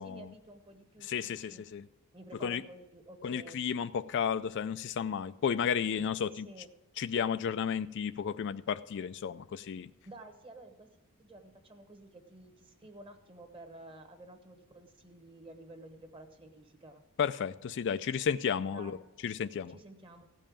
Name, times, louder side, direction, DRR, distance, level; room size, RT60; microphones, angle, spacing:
voice 1, 0.0-1.7 2.1-3.6 6.3-6.7 10.0-17.0 18.7-19.0 19.7-20.2, right 1 dB, 25° right, 6 dB, 1.1 m, -52 dB
voice 2, 1.0-1.9 2.4-2.6 3.2-6.5 7.0-9.9 17.2-19.0 19.2-19.7, left 7 dB, 50° left, 13 dB, 0.3 m, -33 dB
15.5 x 5.4 x 8.7 m, 0.98 s
head